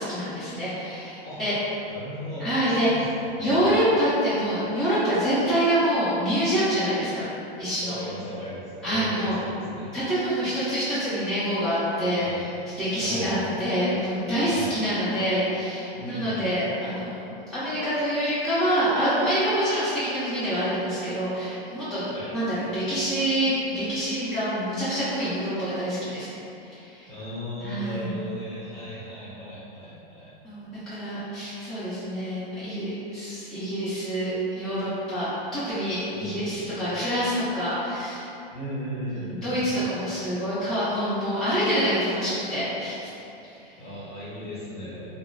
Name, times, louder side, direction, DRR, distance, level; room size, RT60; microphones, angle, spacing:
voice 1, 0.0-1.5 2.4-3.0 3.4-7.3 7.6-8.0 8.8-9.4 9.9-26.3 26.7-27.1 27.6-28.2 30.4-34.3 34.6-38.3 39.1-43.1, equal, ahead, -16 dB, 0.9 m, -26 dB
voice 2, 1.9-3.8 7.8-10.0 12.2-12.7 13.0-13.7 14.5-14.8 15.9-16.5 22.1-22.4 27.1-30.3 36.1-36.6 38.5-39.9 43.7-45.1, equal, 20° left, -10 dB, 1.1 m, -36 dB
3.8 x 2.1 x 2.3 m, 2.8 s
supercardioid pair, 130°, 31 cm